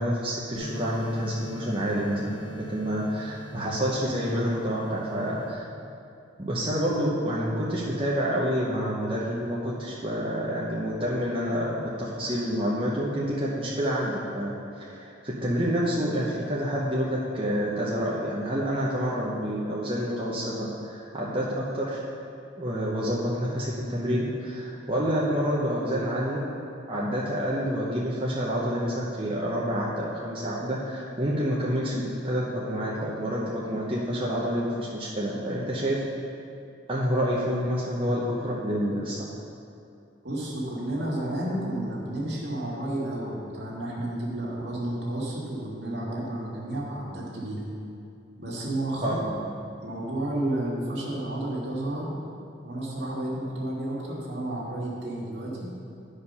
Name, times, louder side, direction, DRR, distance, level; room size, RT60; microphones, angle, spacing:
voice 1, 0.0-5.6 6.4-14.5 14.8-22.0 22.6-26.4 26.9-36.0 36.9-39.3 49.0-49.2, equal, 30° right, -6 dB, 0.9 m, -28 dB
sound 1, 0.5-5.5, equal, 75° left, 1.0 m, -40 dB
voice 2, 40.2-47.6 48.4-49.4 49.8-52.1 52.6-55.7, right 1 dB, 65° right, -5 dB, 2.1 m, -31 dB
10.5 x 5.1 x 5.5 m, 2.5 s
head